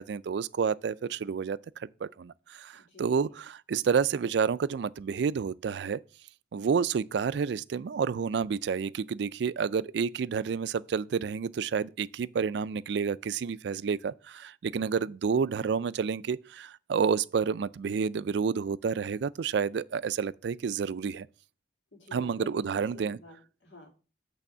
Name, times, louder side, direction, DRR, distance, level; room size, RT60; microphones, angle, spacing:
voice 1, 0.0-6.0 6.5-21.3 22.1-23.2, right 6 dB, 65° right, 0.3 m, -30 dB
voice 2, 2.8-3.4 21.9-23.9, left 3 dB, 80° left, 2.5 m, -50 dB
8.4 x 3.5 x 6.6 m
head